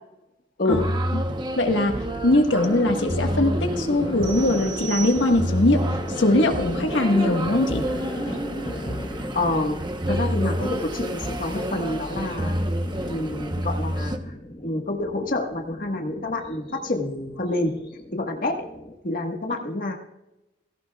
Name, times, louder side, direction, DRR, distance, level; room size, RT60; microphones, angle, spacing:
sound 1, 0.7-14.2, right 1 dB, 25° right, 0.9 m, -29 dB
voice 1, 1.6-1.9 2.2-5.8 6.2-7.8, left 1 dB, 75° left, 3 dB, 1.5 m, -21 dB
sound 2, 2.6-19.0, left 1 dB, 25° left, 1.3 m, -37 dB
sound 3, 4.2-5.8, right 9 dB, 85° right, 2.8 m, -37 dB
voice 2, 9.3-9.8 10.1-12.6 13.1-14.3 14.6-17.7 18.1-18.6 19.0-19.9, left 2 dB, 50° left, 2 dB, 1.5 m, -27 dB
17.5 x 16.5 x 2.4 m, 0.91 s
head